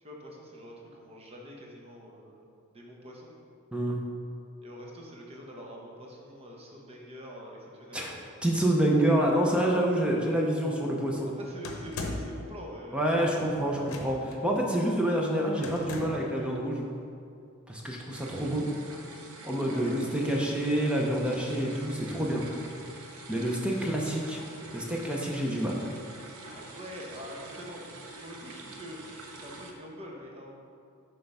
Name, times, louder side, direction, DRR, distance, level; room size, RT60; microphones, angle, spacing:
voice 1, 0.0-3.4 4.6-8.3 11.4-13.0 19.7-20.0 23.8-24.3 26.5-27.8 28.2-29.0 29.4-30.6, equal, 25° right, -2 dB, 1.0 m, -45 dB
voice 2, 8.4-11.3 12.9-16.8 17.7-18.7 19.4-22.4 23.3-24.4 24.7-25.8, right 1 dB, 5° right, -2 dB, 0.6 m, -27 dB
sound 1, 11.6-12.4 13.8-14.4 15.6-16.3, left 2 dB, 70° left, 0.8 m, -37 dB
sound 2, 18.1-29.7, right 2 dB, 80° right, 0.8 m, -46 dB
7.4 x 3.5 x 5.4 m, 2.4 s
head